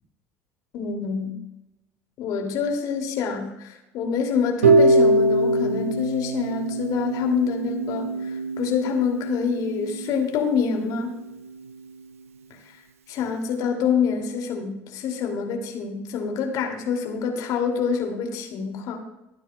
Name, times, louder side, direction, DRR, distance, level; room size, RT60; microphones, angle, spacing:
voice 1, 0.7-1.4 2.2-11.2 12.7-12.8 13.1-19.1, left 6 dB, 55° left, 2 dB, 2.5 m, -26 dB
Harp, 4.6-10.7, right 2 dB, 80° right, 0.8 m, -23 dB
24.0 x 9.1 x 2.2 m, 0.95 s
figure-of-eight pair, 65°, 7 cm